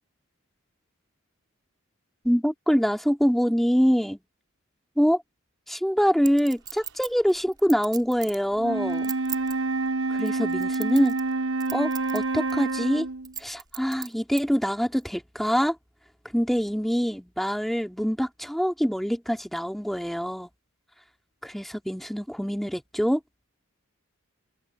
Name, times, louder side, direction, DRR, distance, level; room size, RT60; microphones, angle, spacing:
voice 1, 2.2-4.2 5.0-5.2 5.7-9.1 10.1-11.2 11.7-13.1 13.4-15.7 16.3-20.5 21.4-23.2, equal, ahead, 2.7 m, -25 dB
Chink clink, 6.2-8.4 8.9-9.5 10.2-11.3 11.6-12.2 12.5-12.6 13.2-14.4 15.0-15.1, right 8 dB, 20° right, 6.5 m, -36 dB
Wind instrument woodwind instrument, 8.5-13.3, right 3 dB, 90° right, 4.3 m, -28 dB
open air
head